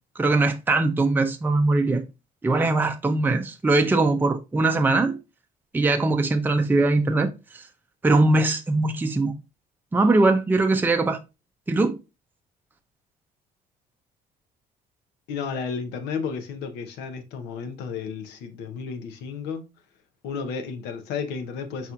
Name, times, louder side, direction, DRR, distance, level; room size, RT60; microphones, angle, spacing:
voice 1, 0.2-2.0 2.4-5.2 5.7-7.6 8.0-9.3 9.9-11.2 11.7-12.0, right 2 dB, 10° right, 0.5 m, -21 dB
voice 2, 15.3-19.7 20.2-21.9, left 5 dB, 90° left, 0.8 m, -32 dB
4.3 x 4.1 x 2.4 m
cardioid pair, 110°, 17 cm